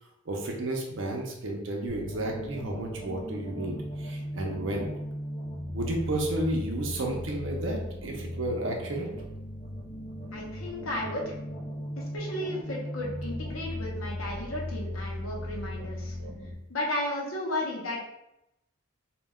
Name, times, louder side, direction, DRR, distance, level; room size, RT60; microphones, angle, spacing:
voice 1, 0.3-4.9 5.7-9.1, right 1 dB, 60° right, 1 dB, 0.5 m, -32 dB
sound 1, 1.9-16.5, left 1 dB, 35° left, 0.6 m, -37 dB
voice 2, 10.3-11.3 12.0-16.1 16.7-18.0, left 1 dB, 75° left, -2 dB, 0.7 m, -34 dB
2.2 x 2.1 x 3.5 m, 0.88 s
head